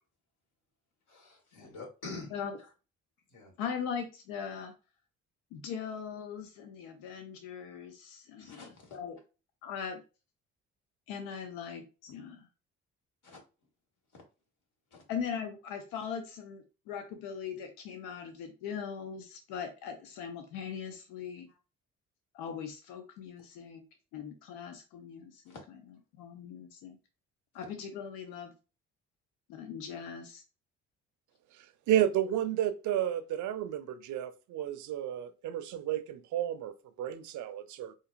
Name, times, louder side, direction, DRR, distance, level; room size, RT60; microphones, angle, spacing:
voice 1, 1.1-2.7 3.3-3.5 8.4-9.0 13.2-13.4 14.9-15.0 21.5-21.6 25.5-25.6, left 3 dB, 60° left, 1.6 m, -47 dB
voice 2, 3.6-4.7 5.5-9.2 9.6-10.0 11.1-12.4 15.1-21.5 22.3-23.8 24.1-25.5 26.2-27.0 27.5-28.5 29.5-30.4, left 7 dB, 80° left, 0.6 m, -40 dB
voice 3, 31.6-37.9, right 11 dB, 60° right, 0.5 m, -32 dB
3.8 x 2.6 x 2.5 m
hypercardioid pair, 55°, 33 cm